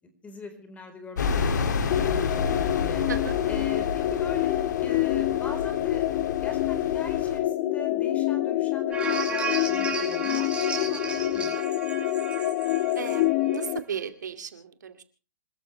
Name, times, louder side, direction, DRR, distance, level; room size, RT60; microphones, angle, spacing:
voice 1, 0.2-3.1 3.5-11.6, left 3 dB, 15° left, 7 dB, 4.3 m, -42 dB
sound 1, 1.2-7.4, left 5 dB, 70° left, 2.7 m, -30 dB
sound 2, 1.9-13.8, left 14 dB, 45° left, 0.8 m, -27 dB
sound 3, 8.9-13.6 14.0-14.1, right 5 dB, 10° right, 6.2 m, -34 dB
voice 2, 13.0-15.0, right 7 dB, 75° right, 8 dB, 2.5 m, -35 dB
27.0 x 14.0 x 3.4 m, 0.34 s
hypercardioid pair, 125°, 10 cm